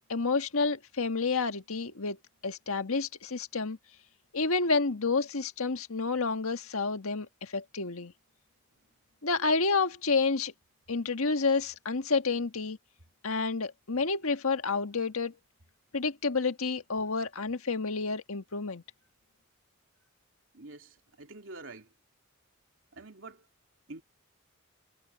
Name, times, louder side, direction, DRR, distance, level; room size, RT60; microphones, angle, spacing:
voice 1, 0.1-2.2 2.4-3.8 4.3-7.3 7.5-8.1 9.2-10.5 10.9-12.8 13.2-15.3 15.9-18.8, left 4 dB, 90° left, 1.6 m, -29 dB
voice 2, 20.5-21.9 22.9-23.4 23.9-24.0, right 2 dB, 65° right, 2.8 m, -46 dB
head